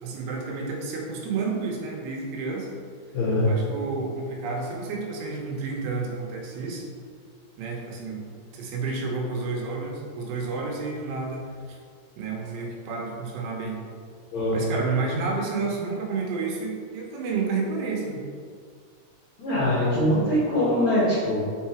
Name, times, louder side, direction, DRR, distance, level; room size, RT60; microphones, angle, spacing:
voice 1, 0.0-2.7 3.4-6.9 7.6-8.2 8.5-11.8 12.2-13.8 14.5-18.2, right 4 dB, 80° right, 0 dB, 3.1 m, -30 dB
voice 2, 3.1-3.5 14.3-14.8 19.4-21.4, left 1 dB, 60° left, -9 dB, 2.0 m, -23 dB
6.4 x 4.8 x 4.4 m, 2.1 s
omnidirectional pair, 5.0 m